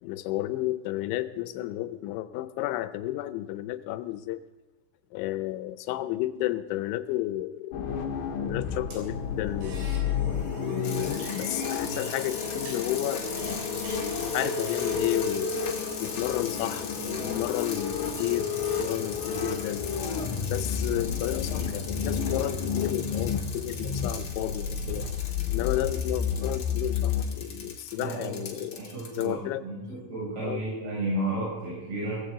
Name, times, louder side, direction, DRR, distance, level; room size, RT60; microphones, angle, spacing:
voice 1, 0.0-4.4 5.1-7.9 8.4-9.9 10.6-13.2 14.3-15.5 16.0-19.9 20.5-25.1 25.5-29.6 30.4-30.6, left 15 dB, 90° left, 12 dB, 3.0 m, -32 dB
sound 1, 7.7-27.2, left 6 dB, 65° left, 2.9 m, -31 dB
sound 2, 8.9-15.0, right 3 dB, 90° right, 6.3 m, -46 dB
sound 3, 10.8-29.3, left 5 dB, 45° left, 1.8 m, -40 dB
voice 2, 28.0-32.2, right 2 dB, 60° right, -7 dB, 8.1 m, -33 dB
17.5 x 16.0 x 3.7 m, 1.2 s
omnidirectional pair, 5.1 m